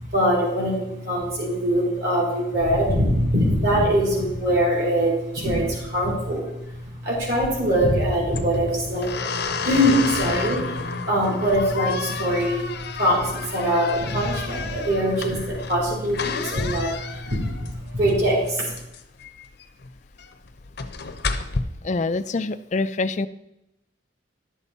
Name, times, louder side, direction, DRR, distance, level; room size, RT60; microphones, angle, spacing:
voice 1, 0.1-6.5 7.0-9.1 9.6-12.7 12.9-18.7, equal, 55° right, -4 dB, 4.3 m, -22 dB
sound 1, 7.3-21.6, left 5 dB, 55° left, 0.7 m, -32 dB
voice 2, 21.8-23.3, left 3 dB, 35° left, 13 dB, 0.4 m, -25 dB
11.5 x 7.1 x 4.2 m, 0.87 s
head